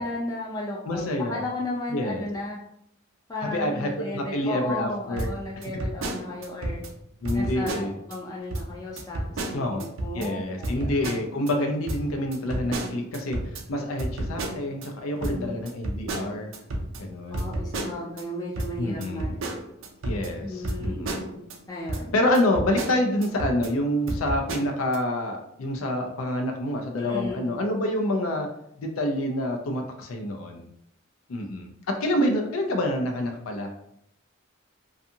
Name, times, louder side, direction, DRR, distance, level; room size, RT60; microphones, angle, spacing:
voice 1, 0.0-1.0 1.3-2.6 3.3-6.8 7.3-10.9 15.2-15.6 17.3-19.5 20.4-21.4 21.7-22.1 27.0-27.5, left 1 dB, 20° left, -5 dB, 0.3 m, -34 dB
voice 2, 0.9-1.4 1.9-2.2 3.5-5.3 7.2-7.9 9.5-13.4 13.7-16.5 17.0-17.5 18.8-19.3 20.0-21.2 22.1-28.5 28.8-30.7 31.3-33.7, left 1 dB, 90° left, 3 dB, 0.5 m, -27 dB
sound 1, 5.2-6.9 7.2-8.2 8.5-8.7 9.0-10.3 10.6-11.5 11.9-14.9 15.2-18.2 18.6-21.6 21.9-22.0 22.3-23.7 24.1-25.0, right 1 dB, 70° right, 0.5 m, -32 dB
2.6 x 2.3 x 2.6 m, 0.74 s
head